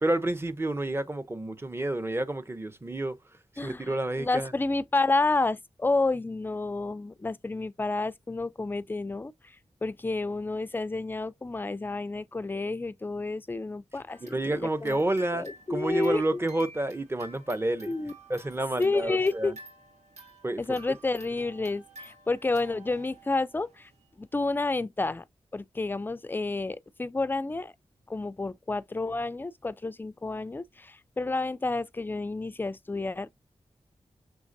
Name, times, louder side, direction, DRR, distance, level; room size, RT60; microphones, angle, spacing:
voice 1, 0.0-3.2 3.6-4.5 14.2-17.9 18.3-19.5 20.4-20.6, right 1 dB, 20° right, 0.7 m, -29 dB
voice 2, 3.6-9.3 9.8-15.0 15.3-16.4 17.9-18.1 18.8-19.5 20.6-23.9 24.2-25.2 25.5-27.7 28.1-33.3, left 3 dB, 15° left, 0.3 m, -30 dB
sound 1, 14.1-24.1, right 2 dB, 75° right, 2.2 m, -51 dB
6.2 x 3.2 x 2.6 m
wide cardioid pair, 115°, 11 cm